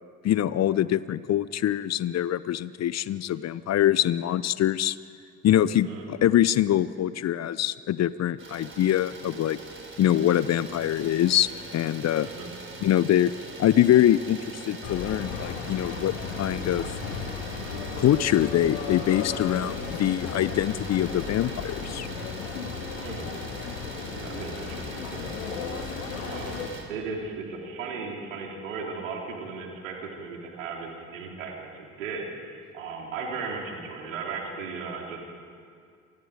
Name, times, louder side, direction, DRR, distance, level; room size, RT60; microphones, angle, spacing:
voice 1, 0.2-5.0 5.4-9.6 10.0-12.3 12.8-13.3 13.6-16.9 18.0-22.1, left 12 dB, 40° left, 18 dB, 0.8 m, -24 dB
Idling, 8.4-26.8, right 3 dB, 30° right, 5.3 m, -42 dB
voice 2, 12.2-12.5 23.0-23.3 24.1-25.3 26.3-35.3, right 4 dB, 75° right, 0 dB, 3.7 m, -36 dB
sound 1, 14.8-26.7, left 6 dB, 70° left, 2.4 m, -35 dB
28.5 x 27.5 x 5.1 m, 2.3 s
figure-of-eight pair, 50°, 39 cm